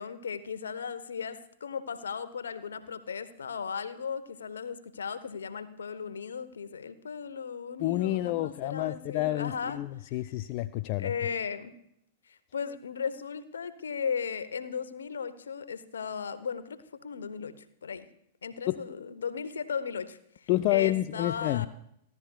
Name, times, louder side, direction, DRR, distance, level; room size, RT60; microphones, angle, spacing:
voice 1, 0.0-9.8 11.0-11.7 12.3-18.1 18.4-21.7, left 6 dB, 70° left, 14 dB, 0.9 m, -36 dB
voice 2, 7.8-11.1 18.7-18.8 20.5-21.7, left 16 dB, 40° left, 11 dB, 0.4 m, -29 dB
29.0 x 12.0 x 2.4 m, 0.74 s
figure-of-eight pair, 100°, 0 cm